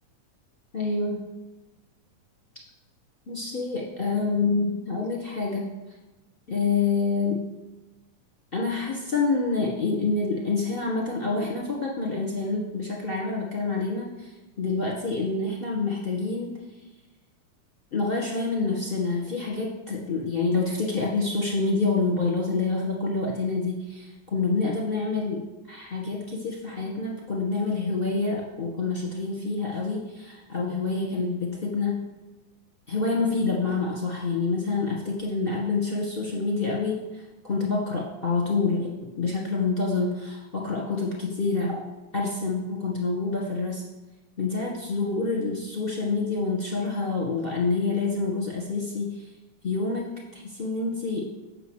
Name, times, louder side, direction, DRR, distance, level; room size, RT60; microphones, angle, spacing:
voice 1, 0.7-1.2 3.3-5.7 6.5-7.4 8.5-14.3 14.6-16.5 17.9-32.1 32.9-41.9 42.1-43.8 44.4-49.3 49.6-51.3, left 3 dB, 30° left, -2 dB, 1.1 m, -27 dB
9.3 x 6.3 x 6.4 m, 1.1 s
omnidirectional pair, 3.4 m